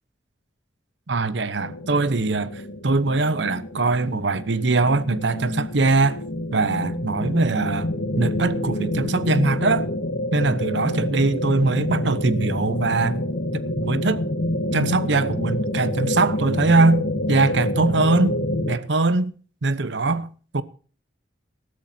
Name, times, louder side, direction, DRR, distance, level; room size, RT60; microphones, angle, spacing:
voice 1, 1.1-6.2 6.5-7.9 8.2-9.9 10.3-13.2 13.5-14.2 14.7-18.4 18.7-19.3 19.6-20.3 20.5-20.6, right 3 dB, 65° right, 0.9 m, -22 dB
sound 1, 1.6-18.8, left 1 dB, 75° left, 2.0 m, -27 dB
19.0 x 13.5 x 2.8 m
head